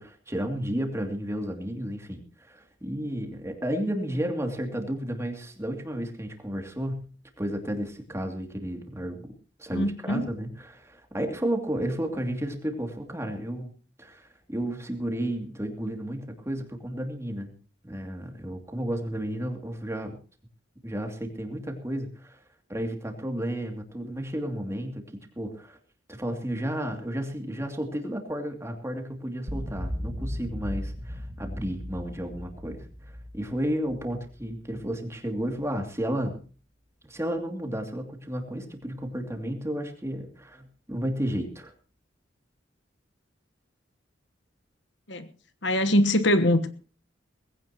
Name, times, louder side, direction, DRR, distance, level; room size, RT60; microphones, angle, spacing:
voice 1, 0.0-7.0 7.4-9.3 9.6-13.7 14.0-17.5 17.8-20.2 20.8-22.4 22.7-25.0 25.4-25.8 26.1-36.4 37.1-41.7, right 1 dB, 15° right, 2.7 m, -32 dB
voice 2, 9.7-10.3 45.1-45.3 45.6-46.7, left 1 dB, 65° left, 1.3 m, -23 dB
sound 1, 29.5-34.8, equal, 35° right, 2.0 m, -36 dB
20.5 x 16.5 x 3.0 m
head